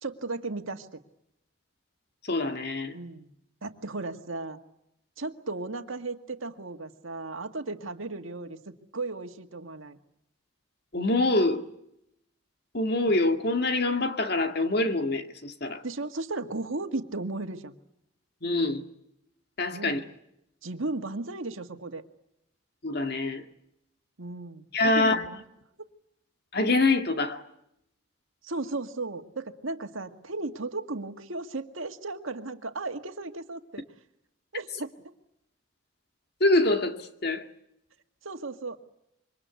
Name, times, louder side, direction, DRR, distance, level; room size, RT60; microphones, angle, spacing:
voice 1, 0.0-1.0 2.9-3.3 3.6-4.6 5.2-8.6 8.9-10.0 15.8-17.8 19.7-20.1 20.6-22.0 24.2-25.4 25.8-25.9 28.4-33.8 34.5-34.9 38.2-38.8, right 3 dB, 80° right, 1.9 m, -35 dB
voice 2, 2.3-2.9 10.9-11.7 12.7-15.8 18.4-18.8 19.6-20.0 22.8-23.4 24.7-25.2 26.5-27.4 36.4-37.4, left 2 dB, 50° left, 2.1 m, -25 dB
27.0 x 24.5 x 8.3 m
head